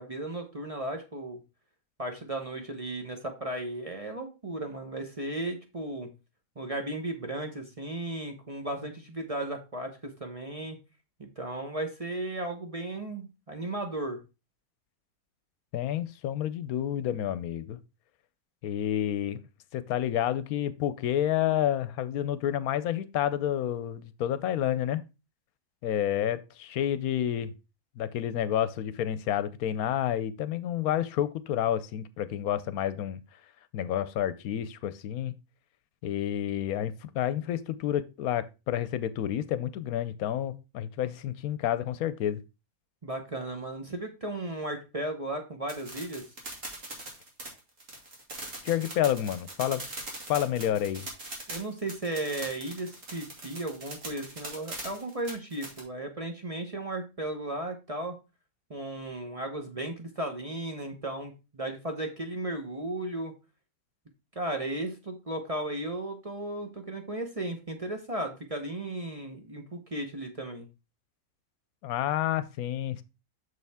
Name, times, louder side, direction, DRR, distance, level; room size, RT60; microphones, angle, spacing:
voice 1, 0.0-1.4 2.0-6.1 6.6-10.8 11.2-14.2 43.0-46.2 51.5-58.1 58.7-63.3 64.3-70.7, right 1 dB, 30° right, 0.9 m, -35 dB
voice 2, 15.7-17.8 18.6-19.4 19.7-25.0 25.8-27.5 28.0-33.2 33.7-35.3 36.0-42.4 48.6-49.8 50.3-51.1 71.8-73.0, left 11 dB, 80° left, 1.1 m, -29 dB
sound 1, 45.7-55.8, right 2 dB, 60° right, 2.6 m, -41 dB
6.7 x 6.6 x 3.5 m
omnidirectional pair, 1.5 m